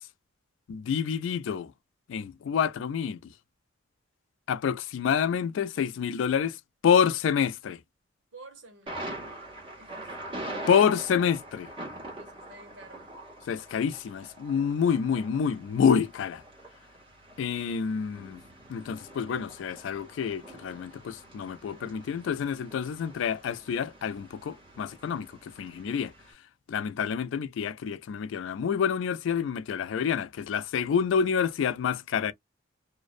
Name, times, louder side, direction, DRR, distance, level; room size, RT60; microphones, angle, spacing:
voice 1, 0.7-1.7 2.1-3.3 4.5-6.6 6.8-7.8 10.7-11.7 13.5-16.4 17.4-18.4 18.7-26.1 26.7-32.3, left 7 dB, 85° left, 0.3 m, -28 dB
voice 2, 8.3-10.2 12.1-13.1, right 3 dB, 70° right, 1.0 m, -51 dB
Thunder, 8.9-26.3, right 1 dB, 30° right, 1.1 m, -44 dB
2.5 x 2.1 x 2.4 m
head